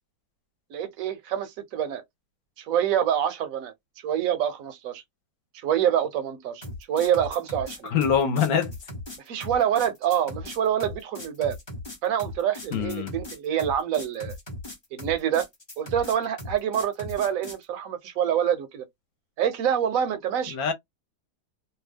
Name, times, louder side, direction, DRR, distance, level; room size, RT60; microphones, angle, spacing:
voice 1, 0.7-2.0 2.6-3.7 4.0-5.0 5.5-7.9 9.3-11.6 12.0-14.3 14.9-15.5 15.8-18.9 19.4-20.6, right 9 dB, 65° right, 0.9 m, -26 dB
sound 1, 6.6-17.6, left 2 dB, 25° left, 0.6 m, -38 dB
voice 2, 7.8-8.7 12.7-13.1 20.5-20.7, left 7 dB, 65° left, 1.2 m, -24 dB
2.8 x 2.3 x 3.4 m
omnidirectional pair, 1.7 m